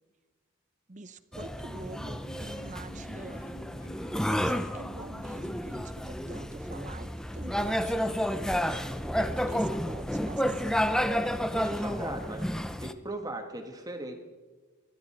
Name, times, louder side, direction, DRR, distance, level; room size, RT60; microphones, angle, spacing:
voice 1, 0.9-3.5 4.2-8.8 9.1-10.9, right 3 dB, 35° right, 13 dB, 0.7 m, -46 dB
sound 1, 1.3-12.9, equal, 5° left, 0.5 m, -31 dB
sound 2, 1.4-6.6, right 1 dB, 35° left, 0.8 m, -51 dB
voice 2, 10.9-12.5 12.8-14.1, right 1 dB, 15° right, 4 dB, 1.5 m, -38 dB
25.0 x 13.0 x 4.4 m, 1.4 s
head